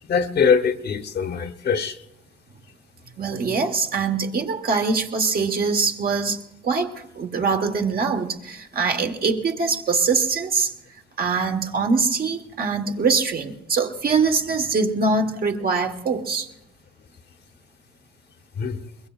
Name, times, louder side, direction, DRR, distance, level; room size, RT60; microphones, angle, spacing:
voice 1, 0.0-2.0 18.6-18.9, left 6 dB, 55° left, 7 dB, 1.1 m, -22 dB
voice 2, 3.2-10.7 11.2-16.5, right 4 dB, 50° right, 4 dB, 1.4 m, -23 dB
22.5 x 21.0 x 2.4 m, 0.87 s
cardioid pair, 90°, 20 cm